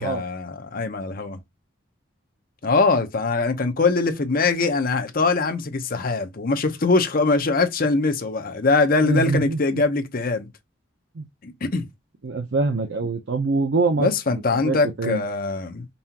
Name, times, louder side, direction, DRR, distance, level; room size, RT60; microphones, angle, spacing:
voice 1, 0.0-1.4 2.6-10.5 11.4-11.9 13.9-15.9, left 3 dB, 50° left, 0.7 m, -22 dB
voice 2, 9.0-9.8 11.2-11.3 12.2-14.1 14.6-15.2, right 3 dB, 65° right, 0.6 m, -24 dB
5.4 x 2.4 x 2.8 m
head